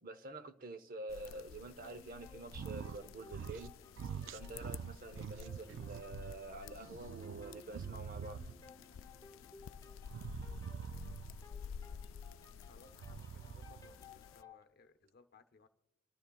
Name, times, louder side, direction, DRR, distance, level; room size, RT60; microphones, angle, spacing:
voice 1, 0.0-3.8 4.3-8.4, right 2 dB, 45° right, 0.7 m, -48 dB
sound 1, 1.1-14.4, left 7 dB, 90° left, 0.3 m, -52 dB
sound 2, 1.8-14.6, left 3 dB, 20° left, 0.8 m, -60 dB
sound 3, 2.5-3.0 3.3-3.7 4.0-6.3 6.8-8.7 10.1-11.5 12.9-14.0, right 7 dB, 70° right, 0.3 m, -45 dB
voice 2, 12.6-15.7, left 3 dB, 55° left, 0.7 m, -63 dB
26.5 x 13.0 x 2.3 m
head